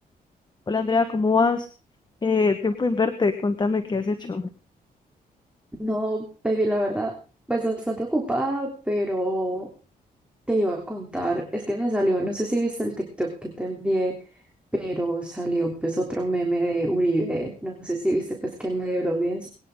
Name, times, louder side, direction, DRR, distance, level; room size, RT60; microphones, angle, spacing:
voice 1, 0.7-1.7 2.2-4.5, left 4 dB, 30° left, 8 dB, 1.4 m, -23 dB
voice 2, 5.8-7.1 7.5-9.7 10.5-14.2 14.8-19.5, right 1 dB, 5° right, 0 dB, 3.3 m, -26 dB
22.5 x 10.0 x 3.8 m, 0.35 s
cardioid pair, 105°, 16 cm